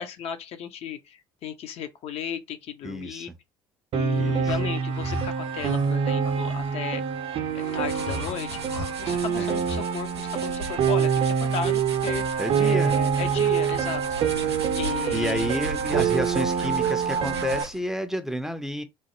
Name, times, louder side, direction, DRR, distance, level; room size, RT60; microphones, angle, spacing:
voice 1, 0.0-3.3 3.9-7.1 7.5-8.6 9.0-14.0 14.7-15.7, left 8 dB, 50° left, 0.6 m, -35 dB
voice 2, 2.8-3.3 4.2-4.6 9.4-9.7 12.4-13.0 14.4-14.6 15.1-18.8, equal, 5° right, 0.5 m, -30 dB
Piano, 3.9-17.6, right 7 dB, 45° right, 0.6 m, -26 dB
sound 1, 4.1-9.9, left 1 dB, 75° left, 1.9 m, -39 dB
sound 2, 7.5-17.9, right 3 dB, 90° right, 0.5 m, -37 dB
3.1 x 2.1 x 3.0 m
hypercardioid pair, 60°, 13 cm